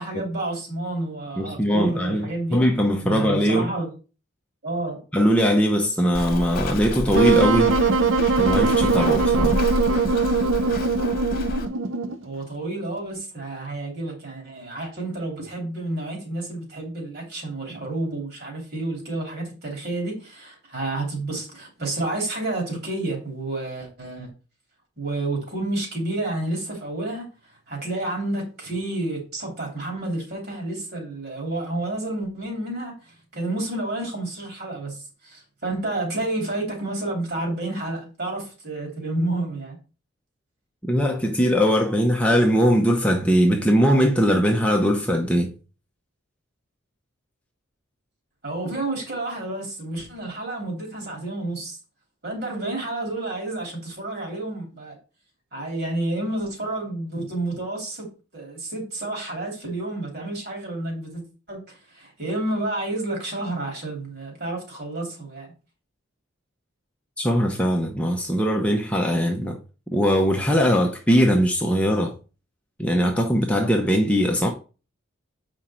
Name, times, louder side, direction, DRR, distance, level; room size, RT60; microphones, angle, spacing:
voice 1, 0.0-2.6 3.0-3.9 4.6-5.0 12.2-24.3 25.0-27.3 27.7-39.8 48.4-51.8 52.2-55.0 55.5-58.1 58.3-61.2 61.5-65.5, right 2 dB, 50° right, 3.1 m, -30 dB
voice 2, 1.4-3.7 5.1-7.8 8.4-9.6 40.9-45.5 67.2-69.6 69.9-72.1 72.8-74.5, equal, 5° left, 0.8 m, -20 dB
Walk footsteps, 6.1-11.6, left 1 dB, 45° left, 1.4 m, -29 dB
Wind instrument woodwind instrument, 7.1-12.2, right 4 dB, 65° right, 0.7 m, -21 dB
7.4 x 5.1 x 4.3 m
head